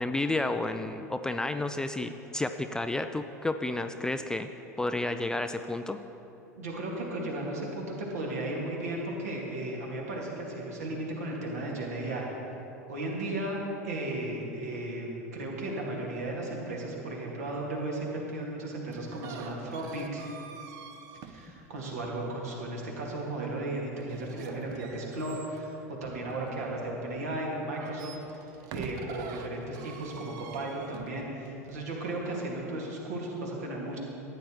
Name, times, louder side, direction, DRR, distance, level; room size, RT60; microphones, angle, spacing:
voice 1, 0.0-4.5 4.8-6.0, left 2 dB, 10° left, 8 dB, 0.3 m, -31 dB
voice 2, 6.5-12.3 12.9-20.2 21.2-34.0, right 1 dB, 65° right, -2 dB, 2.1 m, -35 dB
sound 1, 18.9-22.2 24.0-27.1 27.6-31.8, right 6 dB, 45° right, 0.7 m, -46 dB
14.0 x 9.4 x 3.1 m, 2.9 s
figure-of-eight pair, 80°, 9 cm